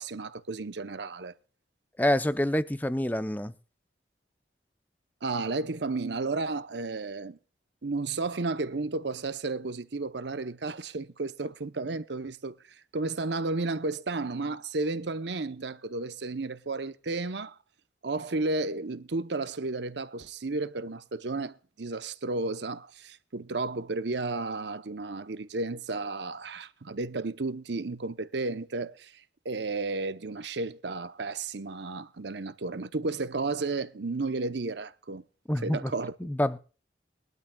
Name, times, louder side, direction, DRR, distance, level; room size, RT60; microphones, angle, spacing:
voice 1, 0.0-1.3 5.2-7.4 7.8-17.6 18.0-35.2 35.6-36.1, right 3 dB, 70° right, 0.8 m, -33 dB
voice 2, 2.0-3.5 35.5-35.9 36.2-36.6, left 1 dB, 10° left, 0.6 m, -27 dB
22.0 x 12.0 x 2.3 m
head